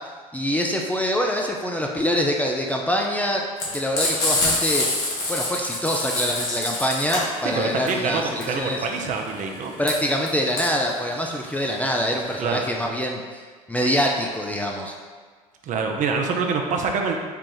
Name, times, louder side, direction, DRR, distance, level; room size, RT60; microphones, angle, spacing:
voice 1, 0.3-3.4 3.7-4.9 5.3-8.8 9.8-13.4 13.7-14.9, equal, 10° left, 0 dB, 0.4 m, -25 dB
Frying (food), 3.6-12.3, left 2 dB, 55° left, 1.4 m, -26 dB
voice 2, 7.4-9.7 12.4-12.6 15.6-17.2, right 4 dB, 45° right, 3 dB, 0.6 m, -25 dB
4.4 x 2.4 x 3.8 m, 1.6 s
hypercardioid pair, 65°, 19 cm